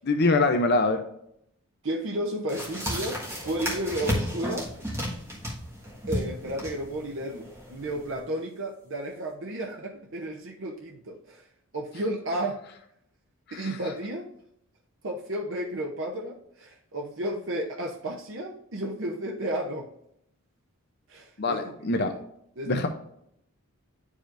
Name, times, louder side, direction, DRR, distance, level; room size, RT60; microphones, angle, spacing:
voice 1, 0.1-1.0 13.5-13.7 21.4-22.1 22.7-22.9, left 2 dB, 45° left, 6 dB, 0.6 m, -24 dB
voice 2, 1.8-4.7 6.1-11.5 11.7-12.6 13.5-14.3 15.0-19.9 21.1-21.7 22.1-22.2 22.6-22.9, right 1 dB, 60° right, 0 dB, 0.8 m, -33 dB
sound 1, 2.5-8.2, equal, 10° right, 1.5 m, -33 dB
10.0 x 4.9 x 2.5 m, 0.74 s
head